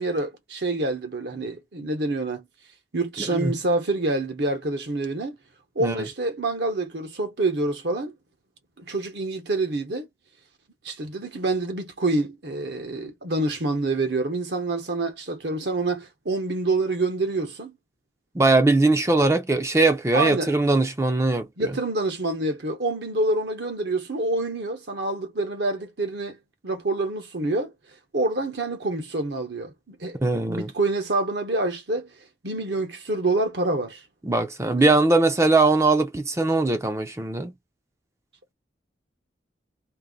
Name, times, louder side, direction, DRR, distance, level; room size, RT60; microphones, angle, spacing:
voice 1, 0.0-2.4 2.9-5.4 5.7-8.2 8.8-10.1 10.8-17.7 20.1-20.5 21.6-26.4 26.6-27.7 28.1-30.2 30.5-32.1 32.4-34.0 34.8-34.9, right 2 dB, 65° right, 1.0 m, -27 dB
voice 2, 18.3-21.7 30.2-30.7 34.2-37.5, right 2 dB, 15° right, 0.5 m, -21 dB
2.7 x 2.6 x 3.8 m
head